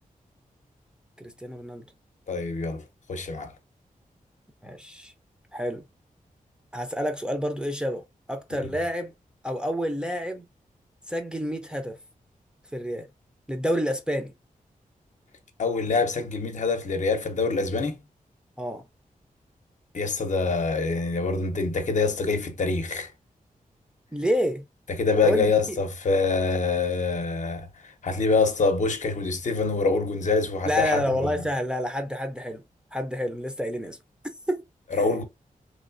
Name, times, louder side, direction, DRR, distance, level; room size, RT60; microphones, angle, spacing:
voice 1, 1.2-1.9 4.6-5.1 5.5-5.8 6.7-9.1 9.4-10.5 11.1-12.0 12.7-13.1 13.5-14.3 18.6-18.8 24.1-24.6 25.2-25.8 30.7-32.6 32.9-34.0 34.5-34.6 34.9-35.1, equal, 5° right, 0.5 m, -29 dB
voice 2, 2.3-2.8 3.1-3.5 8.6-8.7 15.6-18.0 19.9-23.1 24.9-31.4 35.0-35.2, left 4 dB, 60° left, 0.7 m, -25 dB
3.1 x 3.1 x 2.5 m
wide cardioid pair, 170°, 14 cm